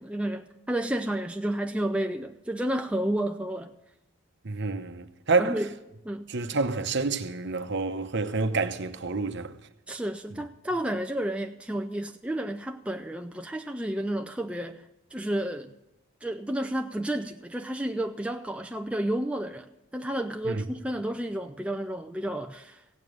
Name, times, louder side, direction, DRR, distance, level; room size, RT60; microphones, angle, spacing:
voice 1, 0.0-3.7 5.4-5.7 6.1-6.3 9.9-14.8 15.1-15.7 16.2-19.7 19.9-22.8, right 1 dB, 5° right, 0.4 m, -31 dB
voice 2, 4.4-5.6 6.3-9.5 20.4-20.6, right 3 dB, 55° right, 0.9 m, -28 dB
16.0 x 9.0 x 6.4 m
head